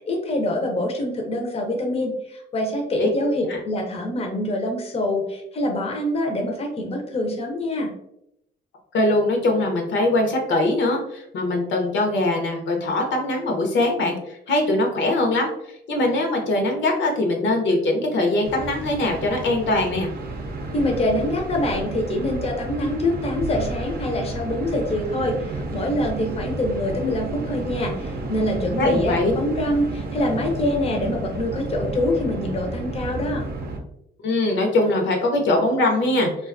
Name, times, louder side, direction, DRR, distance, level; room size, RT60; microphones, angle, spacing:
voice 1, 0.1-7.9 20.7-33.4, left 1 dB, 30° left, 2 dB, 0.5 m, -25 dB
voice 2, 8.9-15.5 15.9-20.1 28.8-29.3 34.2-36.5, left 2 dB, 70° left, 2 dB, 0.7 m, -22 dB
sound 1, 18.4-33.8, right 3 dB, 50° right, 0.5 m, -31 dB
2.4 x 2.2 x 2.4 m, 0.77 s
cardioid pair, 90°, 20 cm